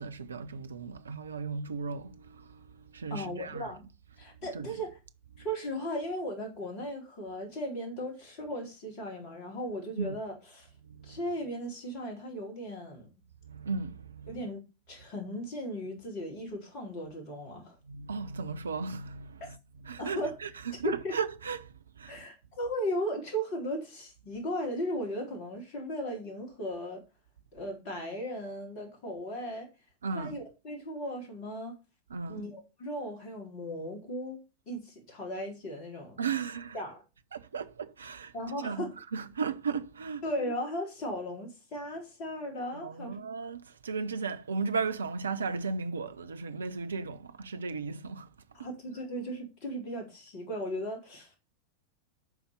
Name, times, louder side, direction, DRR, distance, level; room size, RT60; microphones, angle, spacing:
voice 1, 0.0-3.7 4.5-4.8 5.3-5.4 10.0-10.2 10.8-11.2 13.4-14.4 17.8-19.6 19.8-22.2 30.0-30.4 32.1-32.5 36.2-36.8 37.3-38.3 38.6-40.2 42.7-48.3, right 5 dB, 70° right, 0.8 m, -36 dB
voice 2, 3.1-3.8 4.2-4.9 5.4-10.7 11.0-13.1 14.3-17.8 20.0-20.3 20.8-21.1 22.1-27.0 27.5-29.7 30.1-31.7 32.3-34.4 34.7-36.2 36.7-37.0 38.3-38.9 40.2-43.1 48.5-51.4, equal, 40° left, 4.0 m, -36 dB
11.0 x 4.4 x 6.8 m
figure-of-eight pair, 90°, 0 cm